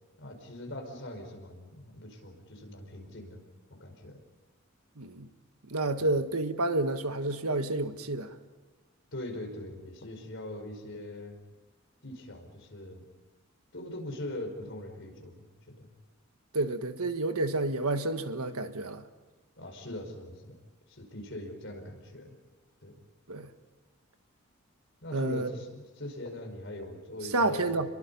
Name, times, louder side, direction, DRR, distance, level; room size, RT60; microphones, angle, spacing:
voice 1, 0.2-3.4 3.7-4.2 9.1-11.4 12.0-13.1 13.7-15.9 19.6-20.5 20.9-22.3 22.8-22.9 25.0-27.9, left 1 dB, 55° left, 4.9 m, -41 dB
voice 2, 5.0-5.3 5.7-8.3 16.5-19.0 23.3-23.5 25.1-25.5 27.3-27.9, right 2 dB, 90° right, 1.6 m, -29 dB
29.5 x 22.5 x 5.5 m
head